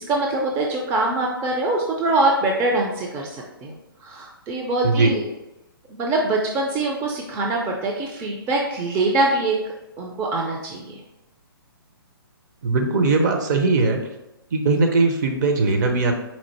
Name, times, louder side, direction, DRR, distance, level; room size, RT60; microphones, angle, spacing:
voice 1, 0.0-5.2 5.9-9.6 10.0-11.0, right 2 dB, 20° right, 0 dB, 0.4 m, -23 dB
voice 2, 12.6-14.0 14.5-16.1, right 3 dB, 50° right, 3 dB, 0.7 m, -19 dB
4.3 x 2.5 x 4.1 m, 0.95 s
figure-of-eight pair, 130°, 13 cm